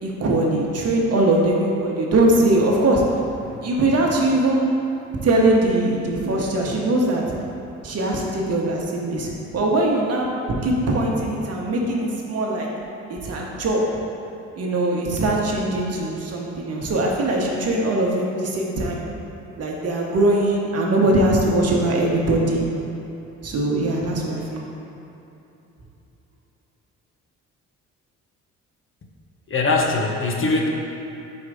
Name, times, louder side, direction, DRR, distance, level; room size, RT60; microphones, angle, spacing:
voice 1, 0.0-3.0 3.6-4.7 5.2-7.3 7.8-10.3 10.6-12.7 13.2-13.8 14.6-19.0 19.6-22.7 23.4-24.6, right 1 dB, 55° right, -2 dB, 1.1 m, -21 dB
voice 2, 29.5-30.7, left 3 dB, 45° left, 0 dB, 0.8 m, -22 dB
4.8 x 4.4 x 4.9 m, 2.9 s
cardioid pair, 90°, 30 cm